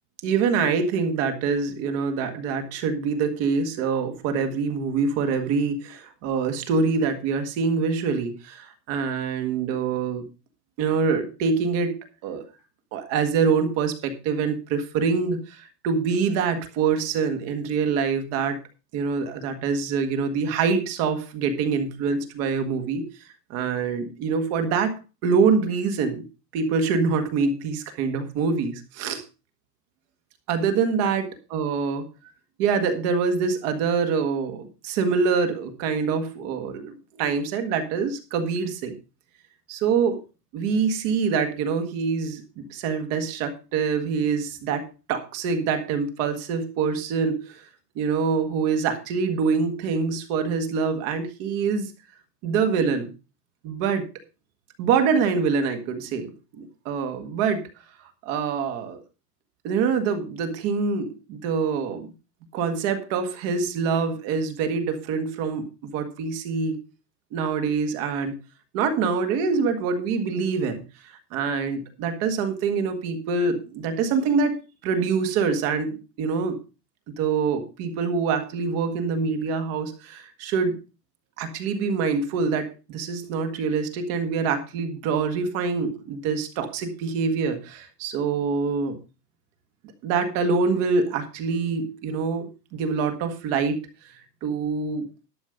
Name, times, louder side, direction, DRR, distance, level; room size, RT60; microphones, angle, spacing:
voice 1, 0.2-10.2 10.8-12.4 12.9-18.6 18.9-23.0 23.5-24.9 25.2-26.2 26.5-29.2 30.5-31.2 31.5-32.0 32.6-38.9 39.7-40.2 40.5-47.7 47.9-51.9 52.4-53.1 53.6-54.1 54.8-57.6 58.2-59.0 59.6-62.1 62.5-66.8 67.3-68.4 68.7-70.8 71.3-74.5 74.8-76.6 77.2-80.8 81.4-89.0 90.0-93.8 94.4-95.1, right 5 dB, 30° right, 7 dB, 1.6 m, -25 dB
12.0 x 7.3 x 5.0 m, 0.31 s
supercardioid pair, 170°, 49 cm